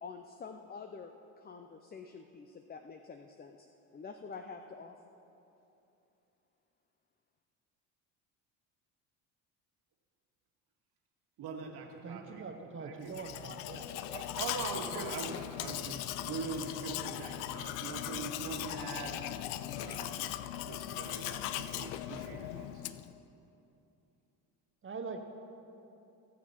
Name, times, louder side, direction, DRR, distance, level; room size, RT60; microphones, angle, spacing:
voice 1, 0.0-3.7 3.9-5.0, left 5 dB, 20° left, 6 dB, 0.5 m, -47 dB
voice 2, 11.4-12.5 12.8-13.5 13.9-19.2 19.7-20.3 20.6-22.8, right 4 dB, 60° right, 1 dB, 1.9 m, -42 dB
voice 3, 12.0-13.9 24.8-25.2, right 4 dB, 30° right, 5 dB, 1.0 m, -43 dB
Domestic sounds home sounds, 13.1-23.2, left 13 dB, 80° left, 0.6 m, -39 dB
19.0 x 7.0 x 4.3 m, 2.9 s
supercardioid pair, 80°, 43 cm